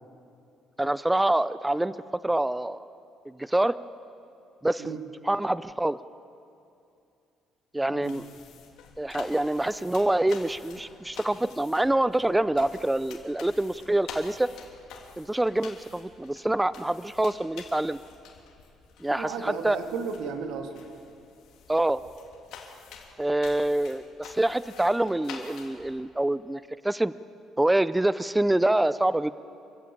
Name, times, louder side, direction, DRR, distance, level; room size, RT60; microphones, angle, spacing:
voice 1, 0.8-1.9 2.2-2.9 3.3-3.8 4.6-5.0 5.2-6.0 7.7-8.2 9.0-14.5 15.2-18.0 19.0-19.8 21.7-22.0 23.2-27.1 27.6-29.3, right 1 dB, 10° right, 15 dB, 0.5 m, -26 dB
voice 2, 7.9-8.2 19.2-20.8, right 5 dB, 85° right, 4 dB, 2.6 m, -34 dB
sound 1, 8.0-25.9, left 6 dB, 80° left, 3.3 m, -48 dB
27.5 x 15.5 x 8.6 m, 2.6 s
cardioid pair, 90°, 0 cm